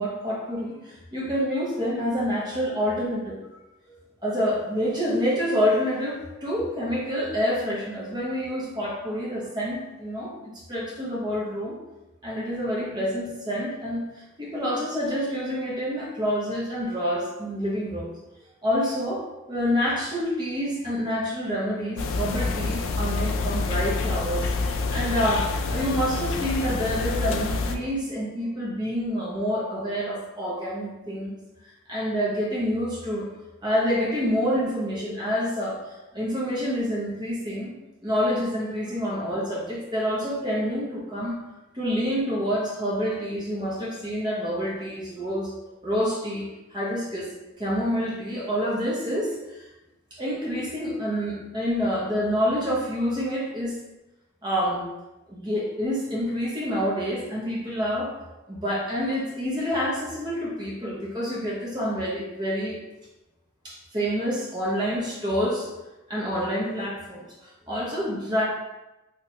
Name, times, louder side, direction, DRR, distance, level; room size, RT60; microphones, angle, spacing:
voice 1, 0.0-3.4 3.9-4.0 4.2-11.8 12.2-18.1 18.6-19.2 19.5-31.3 31.9-33.3 33.6-37.7 38.0-41.4 41.7-45.5 45.8-47.3 47.6-49.6 50.1-53.8 54.4-54.9 55.3-58.1 58.5-62.8 63.6-65.7 66.1-68.4, equal, 20° right, -5 dB, 0.8 m, -27 dB
sound 1, 22.0-27.8, left 3 dB, 80° left, 0.3 m, -27 dB
3.1 x 2.9 x 2.8 m, 1.0 s
head